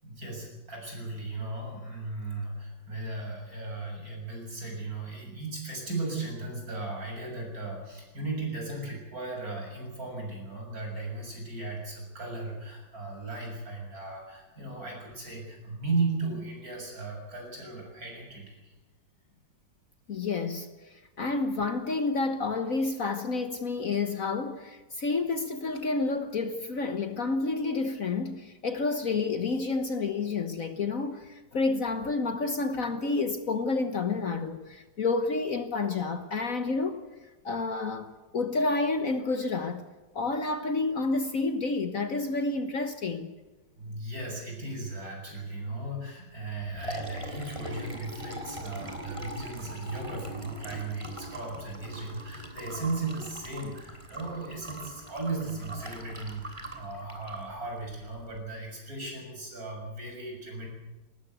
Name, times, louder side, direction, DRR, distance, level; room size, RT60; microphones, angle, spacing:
voice 1, 0.0-18.7 43.8-60.7, right 3 dB, 50° right, 7.3 m, -36 dB
voice 2, 20.1-37.0 37.4-39.8 40.1-43.3, left 3 dB, 50° left, 1.5 m, -29 dB
Liquid, 46.5-58.4, right 1 dB, 15° right, 3.1 m, -42 dB
20.5 x 19.0 x 8.2 m
omnidirectional pair, 2.0 m